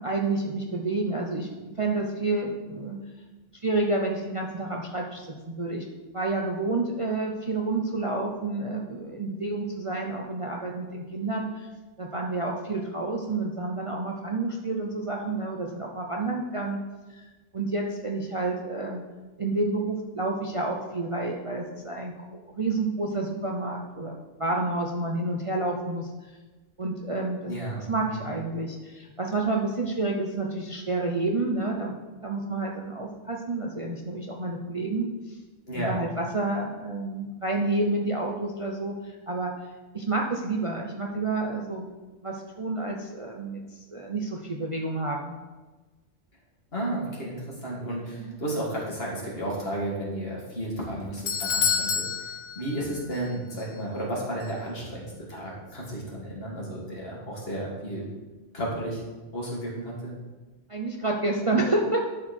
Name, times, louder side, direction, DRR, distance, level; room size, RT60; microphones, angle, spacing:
voice 1, 0.0-3.0 3.6-5.8 6.1-11.7 12.0-16.8 17.1-17.2 17.5-19.0 19.4-22.1 22.5-24.1 24.4-26.3 26.8-27.5 27.8-32.0 32.2-35.4 35.7-39.5 39.9-41.9 42.2-43.6 43.9-45.4 48.2-48.4 60.7-62.0, right 2 dB, 30° right, 0 dB, 0.7 m, -29 dB
voice 2, 27.4-28.2 35.7-35.9 46.7-52.3 52.6-58.1 58.5-59.0 59.3-60.1, right 1 dB, 50° left, -4 dB, 2.5 m, -33 dB
Doorbell, 50.8-53.3 53.6-53.7 54.4-54.5, left 7 dB, 85° left, 1.2 m, -29 dB
12.5 x 4.5 x 4.4 m, 1.2 s
omnidirectional pair, 1.3 m